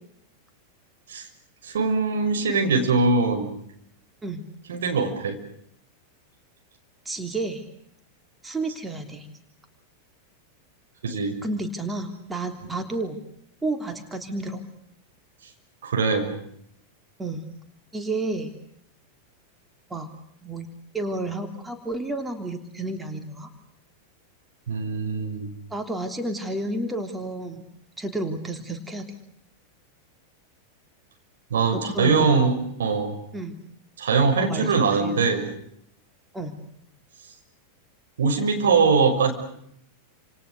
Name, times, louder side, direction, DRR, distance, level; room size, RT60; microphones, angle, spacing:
voice 1, 1.6-3.6 4.7-5.4 11.0-11.4 15.8-16.3 24.7-25.5 31.5-33.2 34.0-35.5 38.2-39.3, right 4 dB, 65° right, 4 dB, 6.3 m, -22 dB
voice 2, 7.0-7.6 8.4-9.3 11.4-13.2 13.6-14.6 17.2-17.4 17.9-18.5 19.9-20.1 20.4-20.7 20.9-23.5 25.7-27.7 28.0-29.2 31.7-32.5 33.3-33.6 34.4-35.2 36.3-36.6, right 2 dB, 10° right, 6 dB, 3.4 m, -31 dB
29.5 x 28.0 x 6.7 m, 0.72 s
figure-of-eight pair, 90°, 0 cm